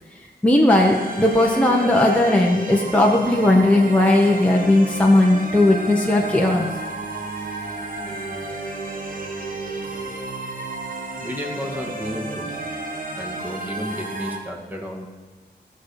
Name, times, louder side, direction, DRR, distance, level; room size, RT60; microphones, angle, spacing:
voice 1, 0.4-6.7, left 1 dB, 5° left, -2 dB, 1.2 m, -17 dB
sound 1, 0.7-14.4, right 2 dB, 50° right, 1.6 m, -32 dB
voice 2, 11.2-12.6 13.1-15.1, equal, 10° right, 0 dB, 2.1 m, -32 dB
16.0 x 6.8 x 4.9 m, 1.3 s
wide cardioid pair, 85°, 18 cm